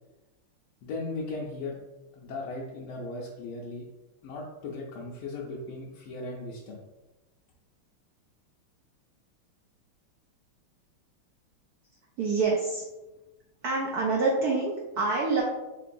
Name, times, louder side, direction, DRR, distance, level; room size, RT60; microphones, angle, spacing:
voice 1, 0.8-1.8 2.1-3.9 4.2-6.8, left 2 dB, 80° left, -4 dB, 1.5 m, -37 dB
voice 2, 12.2-12.8 13.6-15.4, right 3 dB, 85° right, -2 dB, 0.8 m, -26 dB
4.4 x 3.7 x 2.5 m, 1.1 s
omnidirectional pair, 2.4 m